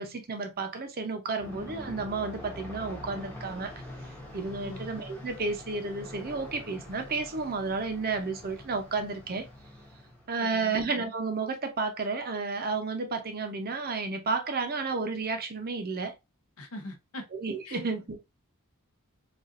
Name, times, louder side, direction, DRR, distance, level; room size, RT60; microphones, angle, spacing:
voice 1, 0.0-3.7 4.3-9.5 10.3-16.1 17.3-18.2, right 4 dB, 45° right, 0.6 m, -32 dB
Aircraft, 1.4-10.4, left 1 dB, 10° left, 0.9 m, -44 dB
voice 2, 10.4-10.8 16.6-17.3 17.6-17.8, left 1 dB, 70° left, 0.7 m, -42 dB
4.0 x 2.4 x 2.5 m
head